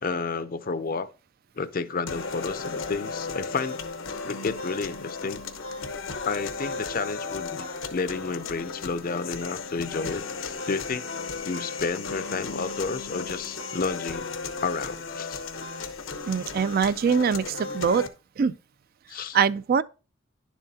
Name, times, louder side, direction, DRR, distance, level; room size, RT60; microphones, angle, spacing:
voice 1, 0.0-1.1 1.5-3.8 4.2-5.4 6.2-11.1 11.5-14.3 14.6-15.4 19.1-19.4, left 4 dB, 45° left, 0.5 m, -31 dB
sound 1, 2.1-18.1, left 4 dB, 85° left, 1.1 m, -35 dB
voice 2, 16.3-18.0 18.4-18.5 19.3-19.8, right 6 dB, 50° right, 0.3 m, -23 dB
10.5 x 7.2 x 2.8 m
head